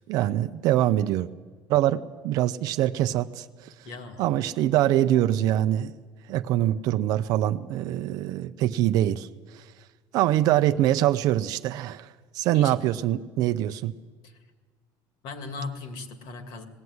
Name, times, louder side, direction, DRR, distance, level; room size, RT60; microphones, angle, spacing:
voice 1, 0.1-1.3 1.7-3.7 4.2-5.9 6.3-9.3 9.5-9.6 10.1-12.1 12.3-13.9, right 13 dB, 50° right, 11 dB, 0.6 m, -24 dB
voice 2, 3.8-4.4 12.5-12.7 14.2-14.4 15.2-16.6, left 3 dB, 60° left, 8 dB, 2.3 m, -38 dB
19.5 x 16.0 x 9.5 m, 1.4 s
cardioid pair, 180°, 8 cm